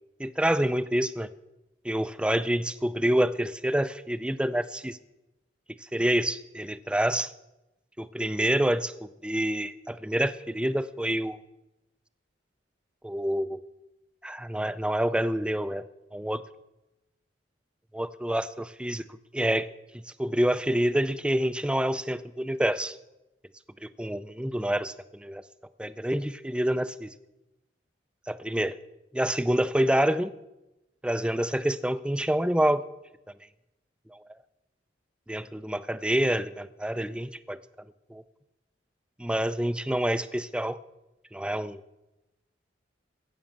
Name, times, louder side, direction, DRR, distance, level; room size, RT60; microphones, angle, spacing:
voice 1, 0.2-1.3 1.8-5.0 5.8-7.3 8.0-11.4 13.0-13.6 14.2-16.4 17.9-19.0 19.3-19.7 20.2-23.0 23.8-25.4 25.8-27.1 28.3-28.8 29.1-30.3 31.0-32.8 34.1-34.2 35.3-37.6 38.1-38.2 39.2-40.8 41.3-41.8, right 1 dB, 5° right, 14 dB, 0.4 m, -27 dB
16.5 x 6.4 x 7.2 m, 0.97 s
head